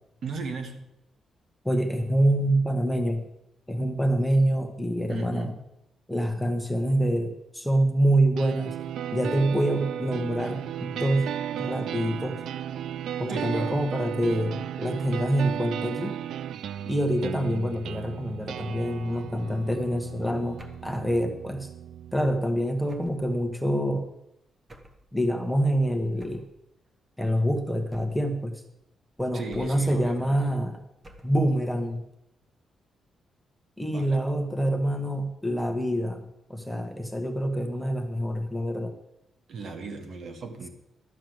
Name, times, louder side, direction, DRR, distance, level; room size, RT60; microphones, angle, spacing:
voice 1, 0.2-0.9 5.1-5.6 13.3-13.8 29.3-30.5 33.8-34.3 39.5-40.7, right 4 dB, 55° right, 7 dB, 1.3 m, -36 dB
voice 2, 1.6-3.3 3.7-5.5 6.1-8.7 9.1-12.4 13.2-16.2 16.8-21.7 22.1-24.1 25.1-26.4 27.2-28.6 29.2-30.8 31.2-32.0 33.8-36.2 36.5-38.9, right 1 dB, ahead, 4 dB, 1.0 m, -26 dB
sound 1, 8.4-22.3, right 10 dB, 80° right, 0.3 m, -35 dB
sound 2, 20.6-21.0 22.9-23.3 24.7-25.1 26.2-26.6 27.9-28.4 29.5-30.0 31.0-31.5, equal, 20° right, 1.0 m, -49 dB
12.0 x 6.5 x 7.8 m, 0.84 s
cardioid pair, 150°, 0 cm